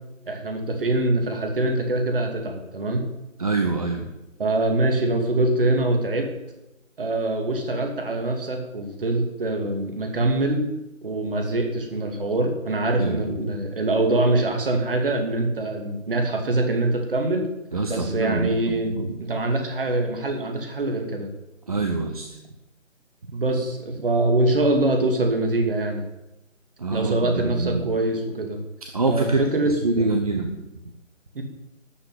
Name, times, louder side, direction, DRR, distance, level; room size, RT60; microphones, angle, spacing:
voice 1, 0.3-3.1 4.4-6.3 7.0-10.6 11.0-17.5 17.9-18.9 19.2-21.3 23.3-26.0 26.9-28.6 29.0-30.1 31.3-31.4, right 2 dB, 45° right, 3 dB, 2.6 m, -24 dB
voice 2, 3.4-4.0 13.0-13.2 17.7-19.1 21.7-22.2 26.8-27.9 28.9-29.4 29.8-30.5, right 3 dB, 30° right, 4 dB, 0.9 m, -25 dB
12.5 x 5.7 x 9.3 m, 0.94 s
figure-of-eight pair, 155°, 39 cm